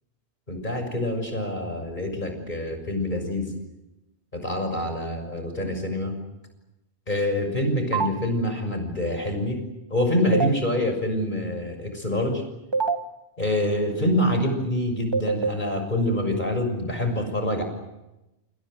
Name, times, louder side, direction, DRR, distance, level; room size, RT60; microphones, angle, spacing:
voice 1, 0.5-3.5 4.3-6.2 7.1-9.6 9.9-12.4 13.4-17.6, left 1 dB, 45° left, 5 dB, 6.8 m, -26 dB
sound 1, 7.9-8.1 10.3-10.5 12.7-13.0 15.1-15.5, right 5 dB, 25° right, 2.0 m, -23 dB
29.0 x 27.5 x 6.7 m, 0.96 s
omnidirectional pair, 1.2 m